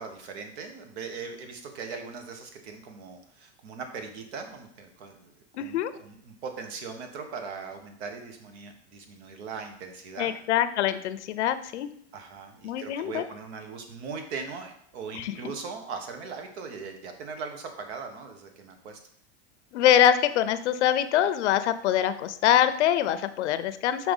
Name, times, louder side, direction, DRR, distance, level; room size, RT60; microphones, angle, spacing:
voice 1, 0.0-10.3 12.1-19.0, right 5 dB, 70° right, 5 dB, 1.6 m, -40 dB
voice 2, 5.5-5.9 10.2-11.9 12.6-13.2 15.1-15.3 19.7-24.1, left 10 dB, 85° left, 12 dB, 0.7 m, -24 dB
6.1 x 4.7 x 5.4 m, 0.67 s
supercardioid pair, 145°, 34 cm